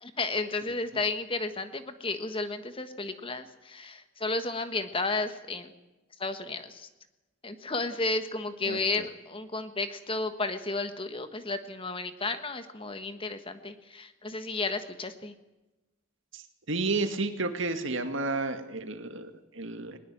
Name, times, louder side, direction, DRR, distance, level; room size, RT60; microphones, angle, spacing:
voice 1, 0.0-5.7 6.2-6.9 7.4-15.3, left 3 dB, 25° left, 9 dB, 1.4 m, -33 dB
voice 2, 8.7-9.1 16.3-16.4 16.7-20.0, right 3 dB, 65° right, 7 dB, 2.2 m, -31 dB
21.0 x 20.5 x 7.7 m, 1.0 s
head